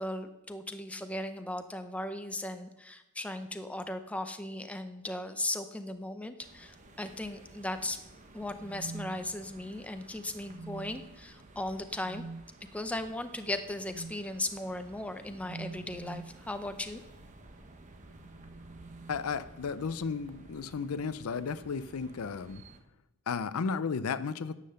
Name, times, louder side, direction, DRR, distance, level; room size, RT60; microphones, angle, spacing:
voice 1, 0.0-8.0 8.3-12.2 12.7-17.0, left 1 dB, 5° left, 8 dB, 0.6 m, -37 dB
sound 1, 6.4-22.8, right 2 dB, 35° right, 1.0 m, -54 dB
sound 2, 8.5-9.8 10.4-11.2 12.0-12.5 13.9-14.2 15.4-16.4 17.9-19.7 20.8-21.3 22.5-22.8, right 4 dB, 55° right, 0.3 m, -46 dB
voice 2, 19.1-22.6 23.3-24.6, left 5 dB, 75° left, 15 dB, 0.5 m, -34 dB
10.0 x 7.6 x 6.6 m, 0.97 s
head